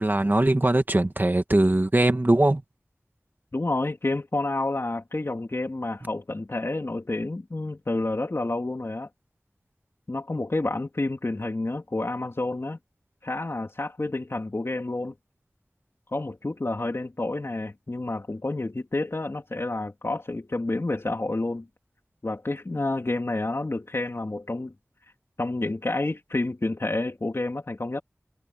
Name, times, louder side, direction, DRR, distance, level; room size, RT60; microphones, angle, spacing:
voice 1, 0.0-2.6, right 1 dB, 40° right, 2.0 m, -21 dB
voice 2, 3.5-9.1 10.1-12.8 13.2-15.1 16.1-21.7 22.2-24.7 25.4-28.0, left 2 dB, 60° left, 3.3 m, -29 dB
wide cardioid pair, 50°, 5 cm